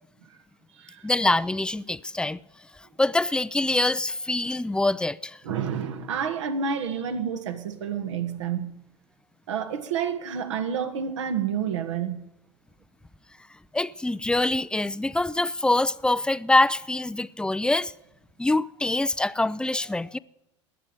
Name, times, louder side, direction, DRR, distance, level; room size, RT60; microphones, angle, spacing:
voice 1, 1.0-2.4 3.0-5.4 13.7-17.9 18.4-20.2, left 2 dB, 5° left, 0.5 m, -24 dB
voice 2, 5.4-8.7 9.5-12.2, right 7 dB, 70° right, 1.8 m, -29 dB
19.5 x 7.5 x 9.6 m
figure-of-eight pair, 80°, 16 cm